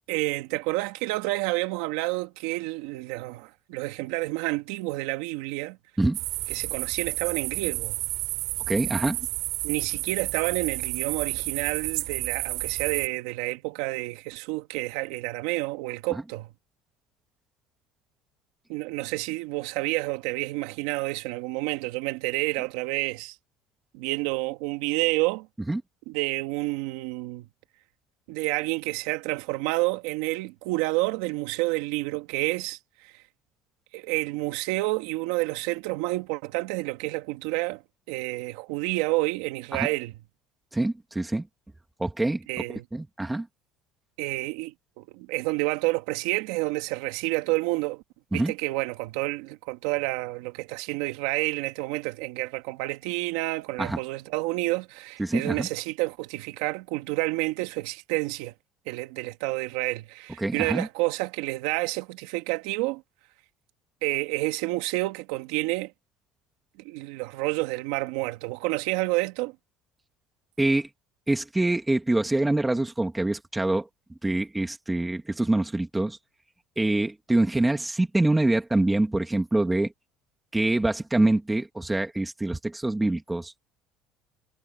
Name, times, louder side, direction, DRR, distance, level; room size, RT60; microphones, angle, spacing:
voice 1, 0.1-5.8 6.5-8.0 9.6-16.5 18.7-23.4 23.9-25.5 26.1-27.5 28.3-33.2 33.9-37.8 38.1-40.1 42.5-42.9 44.2-48.0 48.3-58.5 58.9-63.0 64.0-65.9 66.8-69.6, right 21 dB, 85° right, 2.2 m, -29 dB
sound 1, 6.1-13.1, right 19 dB, 70° right, 3.2 m, -31 dB
voice 2, 8.7-9.2 25.7-25.8 39.7-39.9 40.7-41.4 42.0-42.4 42.7-43.5 48.3-48.5 53.8-54.0 55.2-55.7 60.4-60.9 70.6-70.9 71.3-73.9 74.2-76.2 76.8-79.9 80.5-83.5, right 2 dB, 5° right, 2.5 m, -25 dB
cardioid pair, 150°, 0 cm